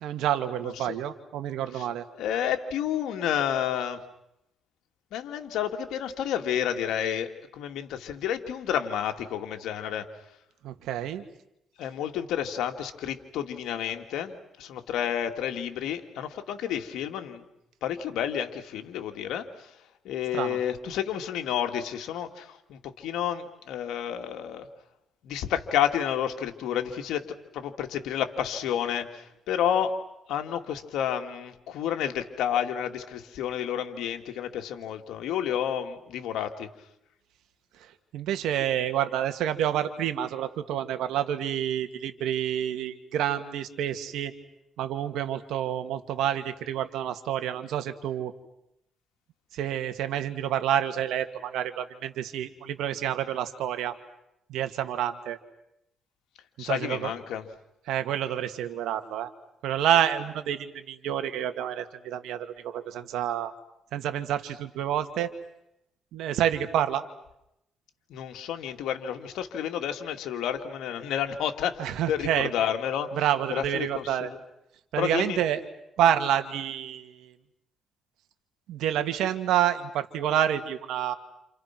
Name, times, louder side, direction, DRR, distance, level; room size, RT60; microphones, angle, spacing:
voice 1, 0.0-2.0 10.6-11.2 20.3-20.6 37.8-37.9 38.1-44.3 44.8-48.3 49.5-53.9 54.5-55.4 56.6-57.1 57.9-59.3 59.6-63.5 63.9-65.3 66.1-67.0 71.8-72.5 73.1-74.3 74.9-75.6 76.0-77.3 78.7-81.1, right 10 dB, 85° right, 8 dB, 2.3 m, -28 dB
voice 2, 0.6-1.0 1.7-1.9 2.2-4.0 5.1-10.0 11.8-17.5 17.8-19.7 20.0-24.7 25.2-29.9 30.3-36.7 56.6-57.5 68.1-73.1 73.5-74.4 75.0-75.4, left 9 dB, 85° left, 6 dB, 2.4 m, -30 dB
29.5 x 29.0 x 6.1 m, 0.83 s
cardioid pair, 90°, 0 cm